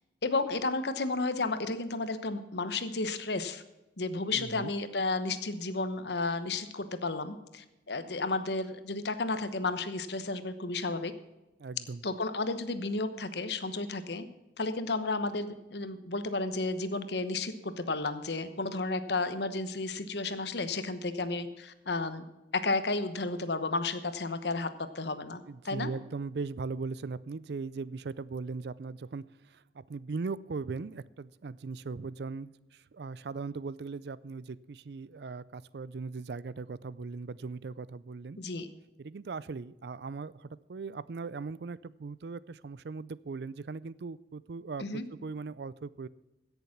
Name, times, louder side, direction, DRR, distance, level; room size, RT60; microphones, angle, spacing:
voice 1, 0.2-3.6 4.0-11.1 12.0-14.3 14.6-22.2 22.5-24.7 24.9-25.9 38.4-38.7 44.8-45.0, left 3 dB, 70° left, 11 dB, 1.1 m, -32 dB
voice 2, 4.3-4.7 11.6-12.0 25.5-38.4 39.0-46.1, right 4 dB, 65° right, 19 dB, 0.4 m, -39 dB
16.5 x 7.0 x 5.9 m, 1.0 s
head